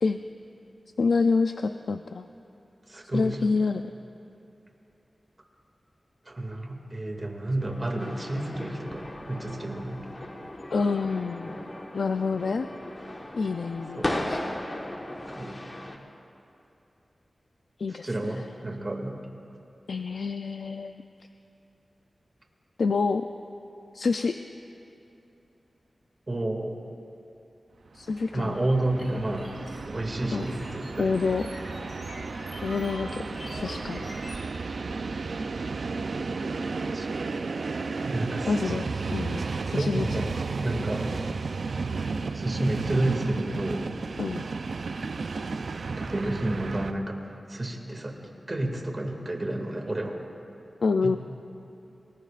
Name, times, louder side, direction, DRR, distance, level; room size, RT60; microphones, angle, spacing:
voice 1, 1.0-2.3 3.1-3.9 10.7-11.6 11.9-12.7 13.3-14.4 17.8-18.1 18.3-18.4 19.9-20.9 22.8-23.3 23.9-24.4 27.9-28.6 30.3-30.5 31.0-31.5 32.6-33.2 33.5-34.0 38.5-38.9 39.1-40.2 44.2-44.4 50.8-51.2, left 4 dB, 90° left, 7 dB, 0.4 m, -27 dB
voice 2, 2.9-3.4 6.3-10.1 14.0-14.1 15.3-15.6 17.9-19.1 26.3-26.8 28.3-29.5 29.8-31.1 36.9-37.1 38.1-38.7 39.7-40.3 40.6-41.2 42.3-43.8 46.0-48.2 48.5-50.2 51.0-51.2, right 1 dB, 30° right, 1 dB, 2.2 m, -30 dB
sound 1, 7.6-16.0, left 1 dB, 30° left, 1.4 m, -36 dB
Train, 28.0-46.9, right 4 dB, 75° right, 0.5 m, -33 dB
sound 2, 29.0-34.5, left 1 dB, 60° left, 5.0 m, -44 dB
28.5 x 20.0 x 2.5 m, 2.9 s
wide cardioid pair, 105°, 0 cm